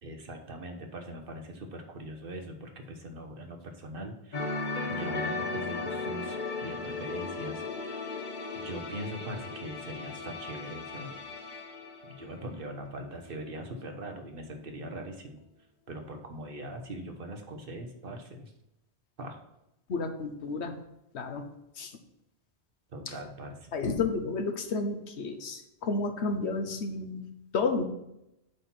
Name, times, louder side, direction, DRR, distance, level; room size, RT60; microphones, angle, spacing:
voice 1, 0.0-4.5 4.9-8.0 8.5-11.2 12.0-15.4 15.9-18.5 19.2-19.4 22.9-23.7, right 1 dB, 60° right, 4 dB, 1.2 m, -41 dB
sound 1, 4.3-13.0 13.3-13.5, left 3 dB, 50° left, 1.0 m, -36 dB
voice 2, 19.9-20.7 21.1-21.4 21.8-21.9 23.1-23.2 23.7-27.3 27.5-27.8, left 4 dB, 85° left, 7 dB, 1.2 m, -31 dB
8.0 x 4.4 x 5.9 m, 0.86 s
omnidirectional pair, 1.1 m